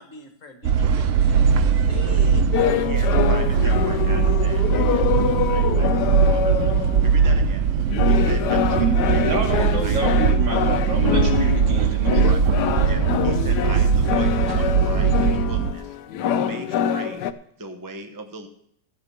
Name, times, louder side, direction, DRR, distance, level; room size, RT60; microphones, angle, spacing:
voice 1, 0.0-1.5 1.9-2.8, left 4 dB, 45° left, 5 dB, 1.6 m, -40 dB
sound 1, 0.6-15.7, right 6 dB, 65° right, 0.8 m, -20 dB
sound 2, 2.5-7.3 7.9-17.3, left 9 dB, 70° left, 1.2 m, -25 dB
voice 2, 2.6-7.7 8.1-10.4 10.6-10.8 12.1-12.4 12.8-16.0 16.4-17.3 17.6-18.5, right 2 dB, 15° right, 6 dB, 0.7 m, -38 dB
voice 3, 8.8-12.3, right 3 dB, 80° right, 1 dB, 2.9 m, -28 dB
13.5 x 7.9 x 5.8 m, 0.72 s
omnidirectional pair, 1.9 m